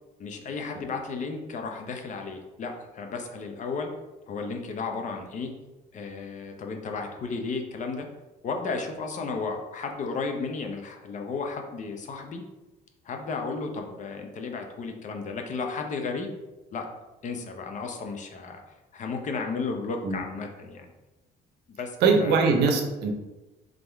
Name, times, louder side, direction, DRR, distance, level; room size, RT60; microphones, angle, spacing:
voice 1, 0.2-3.9 4.3-5.5 5.9-8.1 8.4-12.4 13.0-16.4 16.7-16.9 17.2-18.6 18.9-20.9 21.8-22.4, left 4 dB, 45° left, 4 dB, 0.7 m, -33 dB
voice 2, 22.0-23.1, right 4 dB, 80° right, 3 dB, 0.8 m, -21 dB
3.7 x 3.6 x 3.4 m, 1.1 s
cardioid pair, 110°, 17 cm